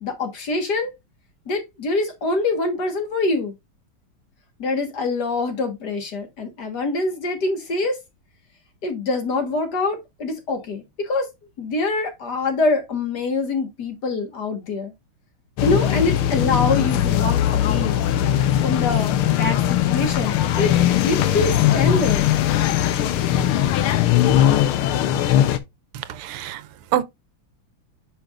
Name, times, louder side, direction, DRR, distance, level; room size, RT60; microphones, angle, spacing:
voice 1, 0.0-0.9 1.5-3.5 4.6-8.0 8.8-11.3 11.6-14.9 15.6-18.0 18.6-22.3, left 3 dB, 50° left, 1.9 m, -25 dB
sound 1, 15.6-25.6, left 11 dB, 85° left, 1.7 m, -19 dB
voice 2, 25.9-27.0, right 11 dB, 90° right, 1.6 m, -27 dB
8.6 x 5.6 x 2.5 m
omnidirectional pair, 2.4 m